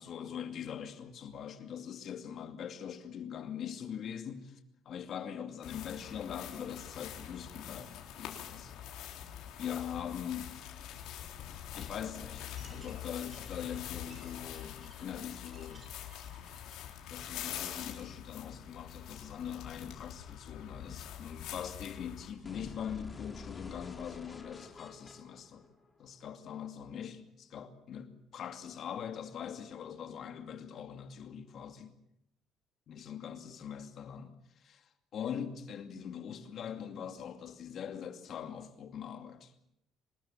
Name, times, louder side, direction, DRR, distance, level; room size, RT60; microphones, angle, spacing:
voice 1, 0.0-4.6 4.9-8.7 9.6-10.6 11.7-15.8 17.1-25.7 26.0-31.9 32.9-39.5, left 8 dB, 45° left, 2.5 m, -42 dB
sound 1, 5.6-22.3, left 10 dB, 75° left, 4.0 m, -45 dB
sound 2, 12.4-17.0, right 2 dB, 25° right, 7.3 m, -60 dB
sound 3, 22.4-26.4, left 4 dB, 15° left, 2.7 m, -49 dB
25.0 x 20.5 x 7.6 m
cardioid pair, 155°, 0 cm